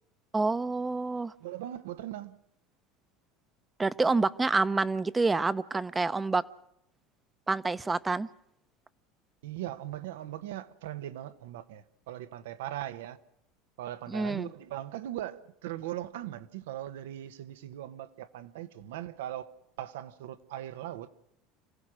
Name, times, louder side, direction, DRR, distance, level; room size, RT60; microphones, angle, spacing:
voice 1, 0.3-1.3 3.8-6.4 7.5-8.3 14.1-14.5, right 3 dB, 15° right, 0.8 m, -27 dB
voice 2, 1.4-2.4 9.4-13.2 13.8-21.1, right 13 dB, 80° right, 1.0 m, -39 dB
27.0 x 16.0 x 6.2 m
hypercardioid pair, 90°, 0 cm